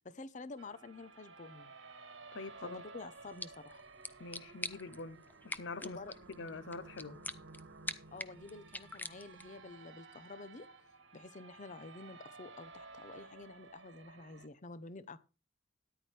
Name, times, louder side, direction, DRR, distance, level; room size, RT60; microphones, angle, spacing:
voice 1, 0.0-1.7 2.6-3.8 5.8-6.1 8.1-10.7 11.1-15.2, left 3 dB, 40° left, 0.8 m, -49 dB
sound 1, 0.6-14.5, right 3 dB, 90° right, 1.5 m, -55 dB
voice 2, 2.3-2.8 4.2-6.0 6.4-7.2, left 3 dB, 75° left, 0.7 m, -45 dB
sound 2, 3.1-9.6, left 2 dB, 10° left, 0.6 m, -47 dB
13.5 x 10.0 x 3.3 m
head